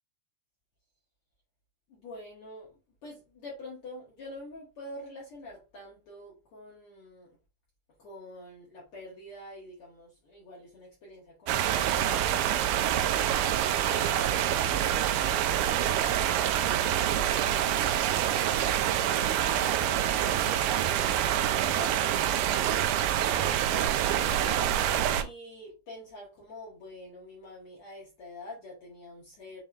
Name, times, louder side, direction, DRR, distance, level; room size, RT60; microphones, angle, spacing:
voice 1, 2.0-7.3 8.0-12.8 13.9-17.9 19.7-22.2 22.4-24.3 25.2-29.6, left 1 dB, 60° left, 1.7 m, -46 dB
sound 1, 11.5-25.2, right 10 dB, 85° right, 2.1 m, -26 dB
6.2 x 3.3 x 2.3 m
omnidirectional pair, 3.6 m